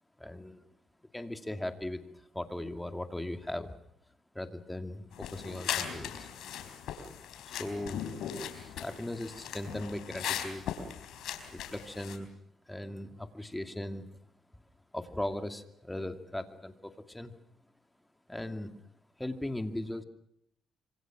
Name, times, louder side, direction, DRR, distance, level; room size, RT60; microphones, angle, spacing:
voice 1, 0.2-0.6 1.1-2.0 2.3-3.7 4.3-6.3 7.5-8.0 8.5-10.6 11.5-12.3 12.7-14.1 14.9-17.3 18.3-18.9 19.2-20.0, left 1 dB, 10° left, 7 dB, 2.5 m, -38 dB
sound 1, 5.1-12.2, left 9 dB, 80° left, 4.0 m, -39 dB
26.0 x 25.5 x 6.1 m, 0.73 s
cardioid pair, 90°, 0 cm